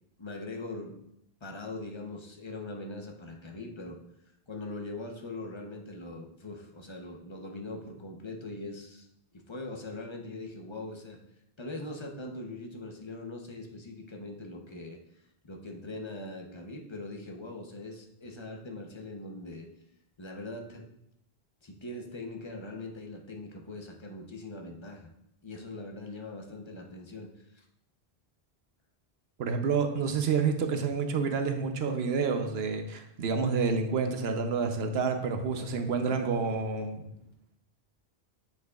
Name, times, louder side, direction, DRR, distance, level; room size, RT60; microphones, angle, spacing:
voice 1, 0.2-0.9 1.4-4.0 4.5-9.1 9.3-11.2 11.6-15.0 15.4-19.7 20.2-20.8 21.6-25.1 25.4-27.6 35.6-36.4 36.7-37.3, left 2 dB, 30° left, 1 dB, 0.8 m, -41 dB
voice 2, 29.4-37.0, right 5 dB, 75° right, 6 dB, 0.9 m, -29 dB
7.4 x 6.9 x 2.4 m, 0.79 s
omnidirectional pair, 1.1 m